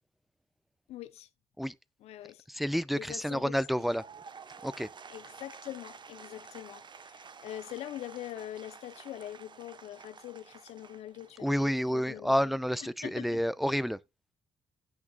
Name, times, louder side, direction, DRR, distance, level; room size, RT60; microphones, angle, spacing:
voice 1, 0.9-1.3 2.0-2.4 2.9-3.6 5.1-12.6 13.0-13.4, left 12 dB, 75° left, 0.7 m, -43 dB
voice 2, 2.5-4.0 4.6-4.9 11.4-14.0, equal, ahead, 0.8 m, -29 dB
Applause / Crowd, 3.6-11.8, right 5 dB, 45° right, 1.1 m, -51 dB
17.0 x 6.0 x 2.3 m
hypercardioid pair, 45°, 11 cm